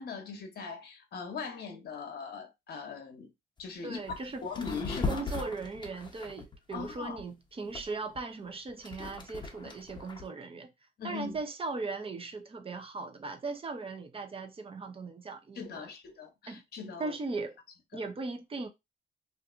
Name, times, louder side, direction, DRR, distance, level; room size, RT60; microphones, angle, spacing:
voice 1, 0.0-3.3 3.6-5.5 6.7-7.2 11.0-11.3 15.6-17.2 17.9-18.0, left 5 dB, 55° left, 0.8 m, -40 dB
sound 1, 3.6-3.7 4.0-4.2 4.5-7.2 7.7-10.3, left 3 dB, 20° left, 0.8 m, -38 dB
voice 2, 3.8-4.5 5.1-10.7 11.0-15.9 16.5-16.6 17.0-17.6 17.9-18.7, right 3 dB, 30° right, 0.6 m, -38 dB
2.6 x 2.5 x 2.4 m
cardioid pair, 90°, 20 cm